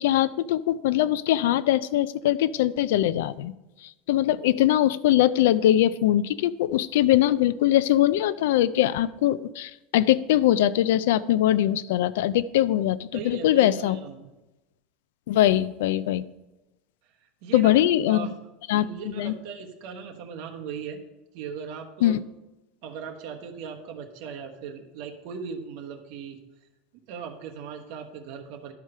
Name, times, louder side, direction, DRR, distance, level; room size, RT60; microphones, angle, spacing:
voice 1, 0.0-3.5 4.1-14.0 15.3-16.2 17.5-18.3 18.7-19.3 22.0-22.2, left 13 dB, 75° left, 17 dB, 0.4 m, -22 dB
voice 2, 13.1-14.3 17.4-18.3 18.7-21.0 21.3-22.2 22.8-26.4 27.1-28.7, right 6 dB, 50° right, 3 dB, 1.2 m, -38 dB
12.0 x 4.7 x 5.6 m, 0.98 s
supercardioid pair, 175°, 0 cm